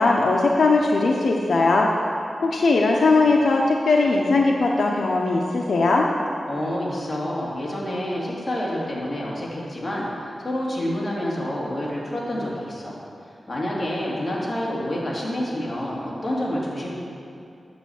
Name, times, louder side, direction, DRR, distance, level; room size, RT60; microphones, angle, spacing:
voice 1, 0.0-1.9 2.4-6.0, left 3 dB, 80° left, -1 dB, 0.8 m, -19 dB
voice 2, 6.5-13.0 13.5-16.9, left 1 dB, 30° left, -5 dB, 2.5 m, -28 dB
8.8 x 7.2 x 7.1 m, 2.6 s
wide cardioid pair, 105°, 0 cm